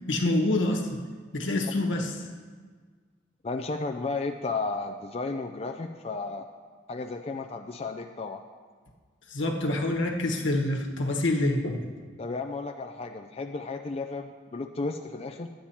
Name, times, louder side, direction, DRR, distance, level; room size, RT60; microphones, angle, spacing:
voice 1, 0.1-1.0 1.3-2.1 9.3-11.8, left 1 dB, 80° left, 2 dB, 1.3 m, -26 dB
voice 2, 3.4-6.5 6.9-8.4 12.2-15.5, left 3 dB, 30° left, 5 dB, 0.4 m, -33 dB
11.5 x 8.7 x 4.4 m, 1.5 s
head